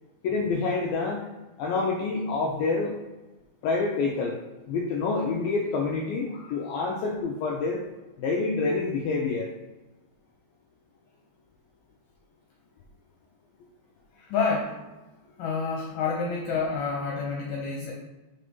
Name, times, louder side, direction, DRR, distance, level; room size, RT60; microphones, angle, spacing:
voice 1, 0.2-1.3 1.6-3.0 3.6-4.4 4.7-7.8 8.2-9.5, left 4 dB, 90° left, -1 dB, 2.1 m, -27 dB
voice 2, 14.2-14.8 15.4-17.9, left 4 dB, 70° left, -1 dB, 2.1 m, -29 dB
6.5 x 4.1 x 5.3 m, 1.1 s
omnidirectional pair, 5.0 m